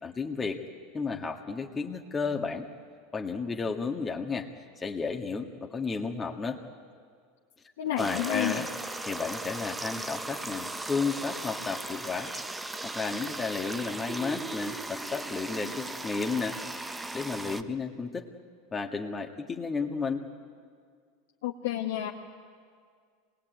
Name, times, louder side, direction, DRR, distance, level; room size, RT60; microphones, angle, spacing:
voice 1, 0.0-0.6 0.9-2.7 3.1-4.5 4.8-6.6 8.0-8.7 9.1-12.3 12.8-16.6 17.1-18.3 18.7-20.3, left 4 dB, 20° left, 2 dB, 1.7 m, -32 dB
voice 2, 7.8-8.7 21.4-22.1, left 12 dB, 80° left, -1 dB, 1.6 m, -30 dB
sound 1, 8.0-17.6, right 2 dB, 10° right, 1.1 m, -37 dB
26.0 x 21.0 x 9.3 m, 2.1 s
hypercardioid pair, 105°, 0 cm